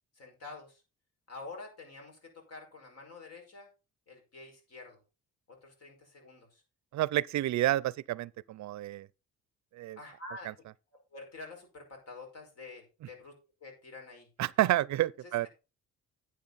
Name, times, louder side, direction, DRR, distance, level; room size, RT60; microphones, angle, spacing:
voice 1, 0.1-0.8 1.3-3.7 4.1-5.0 5.5-6.6 10.0-10.5 11.1-13.3 13.6-14.3 15.2-15.5, left 3 dB, 55° left, 5.4 m, -48 dB
voice 2, 6.9-9.1 9.8-10.0 14.4-15.5, right 15 dB, 70° right, 0.5 m, -29 dB
10.5 x 8.4 x 4.1 m
cardioid pair, 90°, 30 cm